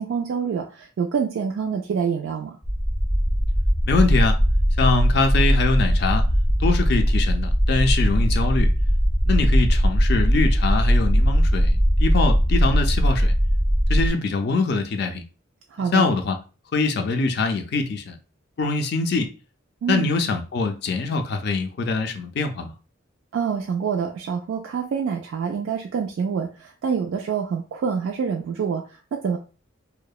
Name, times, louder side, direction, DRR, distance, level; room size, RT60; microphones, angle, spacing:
voice 1, 0.0-2.5 15.7-16.1 19.8-20.1 23.3-29.4, right 6 dB, 70° right, 0.3 m, -26 dB
sound 1, 2.6-14.1, equal, 5° right, 0.5 m, -19 dB
voice 2, 3.8-4.4 4.8-6.3 6.6-8.7 9.3-13.3 13.9-15.2 15.9-16.4 16.7-18.2 18.6-19.3 19.9-22.7, left 3 dB, 50° left, 0.3 m, -23 dB
2.7 x 2.1 x 2.3 m
head